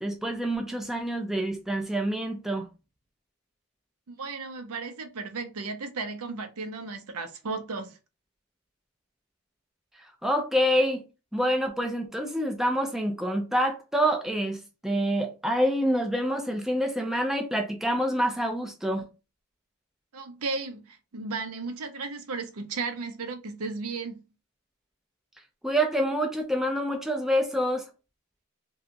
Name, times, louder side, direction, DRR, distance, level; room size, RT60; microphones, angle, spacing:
voice 1, 0.0-2.7 10.0-11.0 11.3-19.1 25.6-27.9, equal, ahead, 0.3 m, -27 dB
voice 2, 4.1-8.0 20.1-24.2, right 4 dB, 80° right, 0.6 m, -35 dB
2.8 x 2.3 x 2.5 m
head